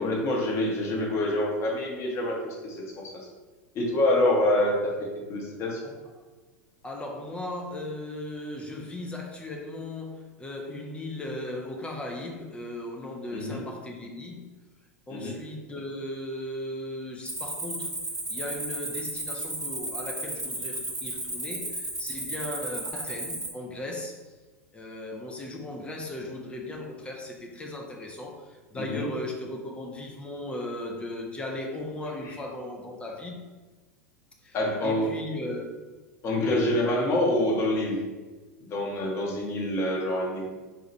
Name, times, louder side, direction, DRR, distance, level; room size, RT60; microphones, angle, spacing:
voice 1, 0.0-3.1 3.7-5.8 13.3-13.6 15.1-15.4 28.7-29.1 32.2-32.3 34.5-35.2 36.2-38.0 38.6-40.5, left 1 dB, 35° left, -2 dB, 0.9 m, -26 dB
voice 2, 6.8-14.5 15.1-18.0 18.3-24.2 24.7-33.5 34.4-34.6 34.8-35.7 36.3-36.8, left 1 dB, 15° left, 0 dB, 0.6 m, -37 dB
Cricket, 17.3-23.5, right 2 dB, 5° right, 1.0 m, -34 dB
4.3 x 2.4 x 3.1 m, 1.3 s
figure-of-eight pair, 90°, 8 cm